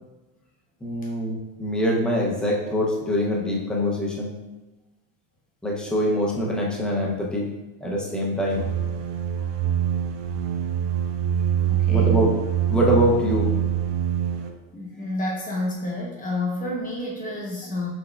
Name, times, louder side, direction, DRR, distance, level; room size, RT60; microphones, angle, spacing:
voice 1, 0.8-4.3 5.6-7.5 7.8-8.7 11.9-12.3 12.7-13.5, equal, ahead, -3 dB, 0.4 m, -24 dB
sound 1, 8.5-14.5, right 10 dB, 80° right, 0.6 m, -24 dB
voice 2, 11.7-12.2 14.7-17.9, left 1 dB, 20° left, -2 dB, 0.9 m, -29 dB
6.3 x 3.3 x 2.2 m, 1.1 s
cardioid pair, 165°, 43 cm